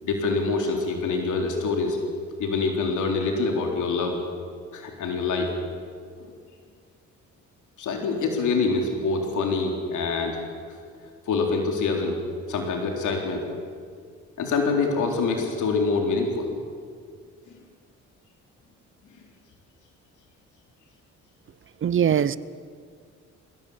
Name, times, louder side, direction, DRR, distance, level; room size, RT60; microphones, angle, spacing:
voice 1, 0.0-2.0 2.4-4.2 4.7-5.5 6.2-6.3 7.8-10.4 11.3-12.2 12.5-13.4 14.4-16.5, left 4 dB, 75° left, 2 dB, 3.8 m, -25 dB
voice 2, 21.8-22.4, right 9 dB, 40° right, 17 dB, 0.8 m, -21 dB
21.0 x 16.5 x 8.7 m, 2.1 s
cardioid pair, 90°, 30 cm